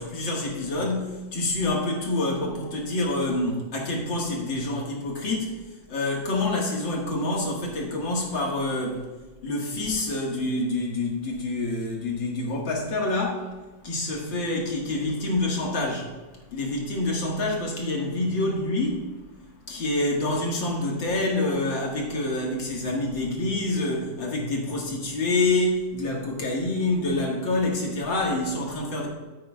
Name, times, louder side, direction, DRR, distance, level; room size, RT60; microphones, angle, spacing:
voice 1, 0.0-5.6 5.9-9.1 9.4-13.5 13.8-16.1 16.5-19.1 19.7-29.1, left 2 dB, 70° left, -2 dB, 2.5 m, -27 dB
14.0 x 8.2 x 2.4 m, 1.2 s
omnidirectional pair, 2.2 m